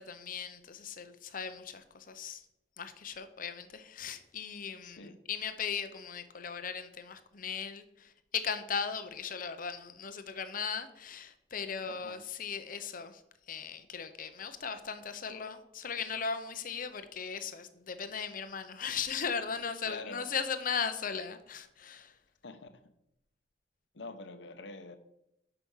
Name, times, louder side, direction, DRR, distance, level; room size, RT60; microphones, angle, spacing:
voice 1, 0.0-2.4 2.8-13.2 13.5-22.1, left 6 dB, 50° left, 0.8 m, -38 dB
voice 2, 4.8-5.2 11.9-12.2 19.8-20.2 22.4-22.7 23.9-25.0, left 3 dB, 80° left, 0.9 m, -45 dB
8.2 x 5.9 x 5.6 m
head